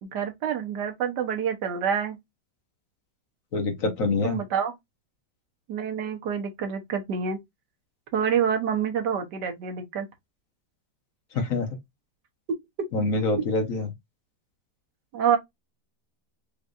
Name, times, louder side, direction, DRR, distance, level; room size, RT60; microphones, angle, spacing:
voice 1, 0.0-2.2 4.2-4.7 5.7-7.4 8.1-10.1 15.1-15.4, right 7 dB, 75° right, 1.6 m, -27 dB
voice 2, 3.5-4.4 11.3-11.7 12.9-13.9, left 3 dB, 55° left, 1.3 m, -25 dB
5.1 x 3.2 x 2.5 m
omnidirectional pair, 1.9 m